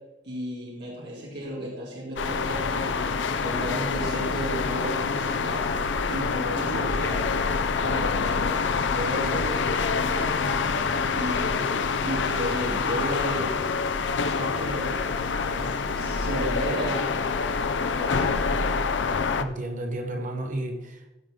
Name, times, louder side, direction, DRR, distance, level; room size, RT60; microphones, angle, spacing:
voice 1, 0.2-2.9 3.3-5.7 6.1-7.3 7.7-10.7 11.1-11.8 12.0-13.5 14.2-17.1 17.9-18.5, equal, 65° right, -5 dB, 2.6 m, -34 dB
sound 1, 2.2-19.4, left 5 dB, 85° left, 0.6 m, -26 dB
voice 2, 19.4-21.2, right 1 dB, 45° right, 3 dB, 1.3 m, -32 dB
15.0 x 5.8 x 3.7 m, 1.0 s
head